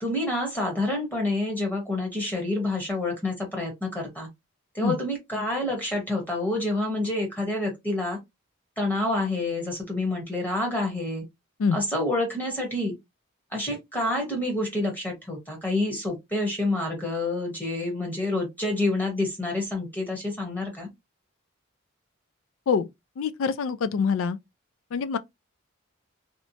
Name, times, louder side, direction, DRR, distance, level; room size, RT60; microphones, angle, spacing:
voice 1, 0.0-4.3 4.7-8.2 8.8-11.2 11.7-13.0 13.5-20.9, left 2 dB, 10° left, 0.9 m, -28 dB
voice 2, 23.2-24.4 24.9-25.2, left 5 dB, 70° left, 0.3 m, -25 dB
2.8 x 2.1 x 2.6 m
head